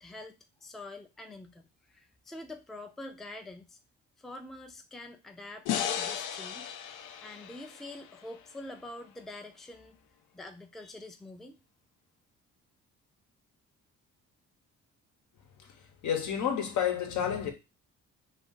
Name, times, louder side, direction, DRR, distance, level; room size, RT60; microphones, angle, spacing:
voice 1, 0.0-1.6 1.9-3.8 4.2-6.7 7.1-10.0 10.3-11.6, left 2 dB, ahead, 0.4 m, -46 dB
sound 1, 5.7-8.9, left 9 dB, 90° left, 0.5 m, -36 dB
voice 2, 15.6-17.5, left 9 dB, 75° left, 0.9 m, -31 dB
2.6 x 2.5 x 3.7 m
cardioid pair, 90°, 30 cm